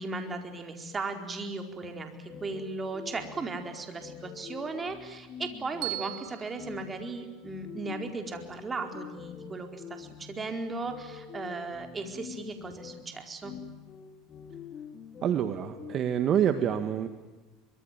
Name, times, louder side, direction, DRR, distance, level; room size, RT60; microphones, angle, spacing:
voice 1, 0.0-13.5, right 3 dB, 20° right, 5 dB, 4.4 m, -37 dB
sound 1, 2.3-16.0, left 6 dB, 35° left, 2.5 m, -46 dB
Bell, 5.8-8.0, right 20 dB, 75° right, 2.2 m, -40 dB
voice 2, 15.2-17.1, right 9 dB, 40° right, 9 dB, 1.8 m, -27 dB
24.0 x 24.0 x 9.2 m, 1.2 s
supercardioid pair, 125°, 0 cm